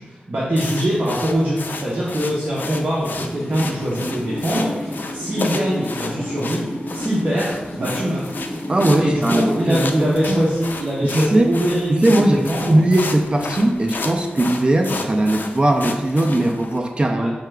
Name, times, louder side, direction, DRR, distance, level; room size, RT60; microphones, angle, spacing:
voice 1, 0.0-8.3 9.0-12.7 17.1-17.3, equal, 45° right, -7 dB, 0.8 m, -23 dB
sound 1, 0.6-16.8, left 3 dB, 65° left, 0.3 m, -32 dB
sound 2, 3.0-10.5, equal, 5° right, 1.0 m, -31 dB
voice 2, 8.7-10.4 11.1-11.5 11.9-17.3, right 1 dB, 30° right, 4 dB, 0.4 m, -19 dB
4.6 x 2.3 x 3.2 m, 1.3 s
wide cardioid pair, 100°, 3 cm